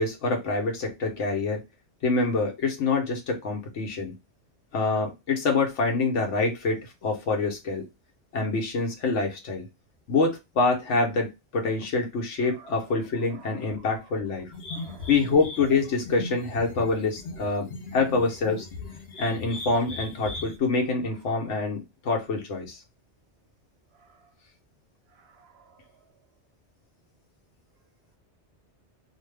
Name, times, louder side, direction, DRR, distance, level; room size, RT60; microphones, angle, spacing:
voice 1, 0.0-1.6 2.0-4.1 4.7-7.8 8.3-9.7 10.1-14.5 15.1-18.7 19.2-22.8, left 3 dB, 85° left, 1.2 m, -26 dB
voice 2, 12.4-13.0 13.3-14.0 14.7-15.1 24.0-24.1 25.2-25.8, right 5 dB, 65° right, 0.8 m, -52 dB
sound 1, 14.5-20.6, left 3 dB, 65° left, 0.8 m, -39 dB
3.0 x 2.1 x 3.2 m
omnidirectional pair, 1.2 m